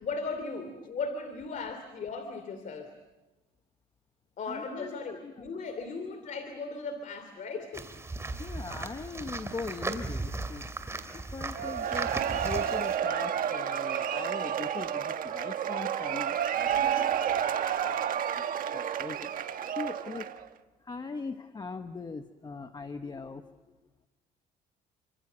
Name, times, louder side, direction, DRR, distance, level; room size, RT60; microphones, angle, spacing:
voice 1, 0.0-2.9 4.4-7.9 16.7-17.1 18.6-18.8, left 4 dB, 50° left, 8 dB, 2.9 m, -37 dB
voice 2, 4.5-4.9 5.2-5.4 8.4-18.0 18.3-19.3 19.8-20.3 20.8-23.6, left 4 dB, 25° left, 8 dB, 1.2 m, -41 dB
sound 1, 7.7-13.0, right 2 dB, 15° right, 2.8 m, -37 dB
Cheering / Applause / Crowd, 11.5-20.5, right 9 dB, 55° right, 1.5 m, -30 dB
30.0 x 25.5 x 6.9 m, 1.2 s
cardioid pair, 110°, 17 cm